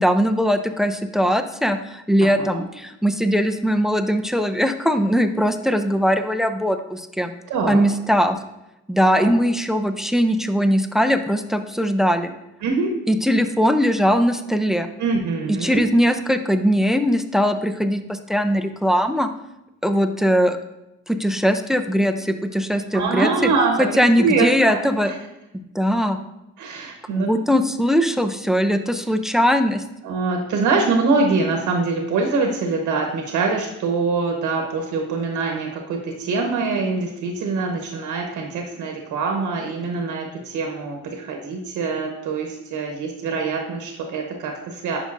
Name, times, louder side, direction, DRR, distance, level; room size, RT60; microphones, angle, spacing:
voice 1, 0.0-7.3 7.7-8.4 8.9-12.3 13.1-14.9 15.5-19.3 19.8-20.6 21.1-23.3 23.8-25.1 25.7-26.2 27.1-29.8, equal, ahead, 9 dB, 0.5 m, -20 dB
voice 2, 2.2-2.6 7.5-7.8 9.2-9.3 12.6-12.9 15.0-15.8 22.9-23.9 24.2-25.1 26.6-27.3 30.0-45.0, right 4 dB, 85° right, 2 dB, 1.1 m, -24 dB
10.0 x 5.1 x 2.5 m, 0.92 s
cardioid pair, 90°, 30 cm